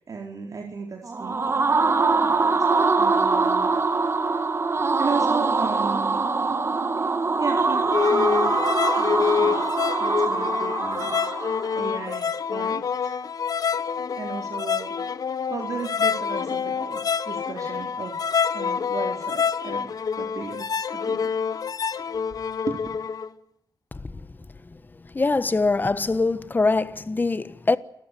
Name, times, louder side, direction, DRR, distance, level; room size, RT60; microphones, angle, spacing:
voice 1, 0.1-2.7 2.9-3.7 5.0-6.2 6.5-6.6 7.4-8.6 8.8-9.6 10.0-11.2 11.8-13.2 14.1-14.9 15.5-20.7 20.9-21.3 22.7-22.8, right 5 dB, 55° right, 4.7 m, -35 dB
sound 1, 1.0-11.9, right 4 dB, 35° right, 2.5 m, -23 dB
sound 2, 7.9-23.3, left 6 dB, 60° left, 1.2 m, -27 dB
voice 2, 25.1-27.8, left 3 dB, 25° left, 1.3 m, -23 dB
29.0 x 14.0 x 9.9 m
wide cardioid pair, 100°, 7 cm